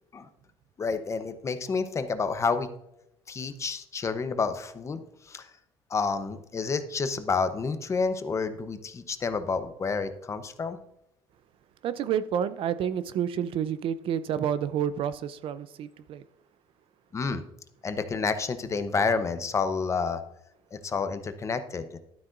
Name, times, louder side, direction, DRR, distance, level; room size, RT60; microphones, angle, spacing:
voice 1, 0.8-2.7 3.3-5.5 5.9-10.8 17.1-17.4 17.8-20.2 20.7-22.0, left 4 dB, 30° left, 0.8 m, -29 dB
voice 2, 11.8-16.3, right 9 dB, 60° right, 0.5 m, -29 dB
12.0 x 9.7 x 2.5 m
cardioid pair, 120°, 10 cm